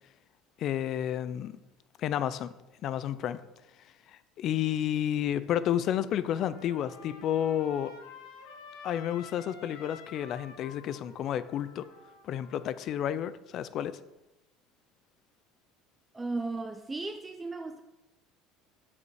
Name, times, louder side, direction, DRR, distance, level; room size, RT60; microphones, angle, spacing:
voice 1, 0.6-1.6 2.0-2.5 2.8-3.4 4.1-8.0 8.8-11.9 12.2-14.0, left 10 dB, 50° left, 0.4 m, -31 dB
Trumpet, 6.2-12.9, left 4 dB, 80° left, 1.4 m, -50 dB
voice 2, 16.1-17.8, right 3 dB, 15° right, 0.4 m, -35 dB
6.9 x 5.1 x 4.8 m
supercardioid pair, 120°, 0 cm